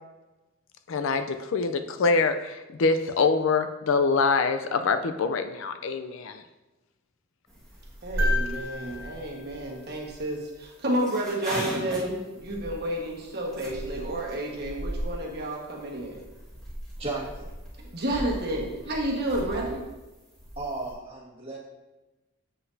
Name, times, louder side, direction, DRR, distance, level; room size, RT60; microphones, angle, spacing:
voice 1, 0.9-6.4, left 4 dB, 65° left, 8 dB, 0.4 m, -25 dB
sound 1, 7.5-20.9, equal, ahead, 1.6 m, -36 dB
voice 2, 8.0-16.2 17.9-19.8, right 1 dB, 50° right, -2 dB, 1.3 m, -30 dB
sound 2, 8.2-10.5 12.5-12.6, left 2 dB, 70° right, 1.4 m, -34 dB
voice 3, 16.9-17.5 19.5-19.7 20.5-21.6, right 2 dB, 25° right, -4 dB, 1.6 m, -34 dB
7.8 x 5.9 x 2.6 m, 1.1 s
head